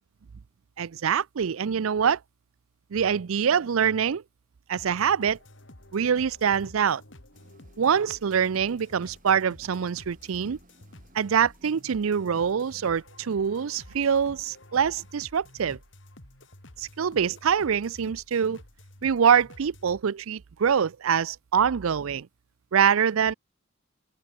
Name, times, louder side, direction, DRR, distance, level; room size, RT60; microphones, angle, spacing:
voice 1, 0.8-2.2 2.9-4.2 4.7-5.4 5.9-7.0 7.8-10.6 11.1-15.8 16.8-18.6 19.0-22.3 22.7-23.3, right 7 dB, 85° right, 0.5 m, -24 dB
sound 1, 4.7-20.0, left 1 dB, 60° left, 3.9 m, -51 dB
sound 2, 7.3-12.5, right 1 dB, 40° right, 4.4 m, -60 dB
head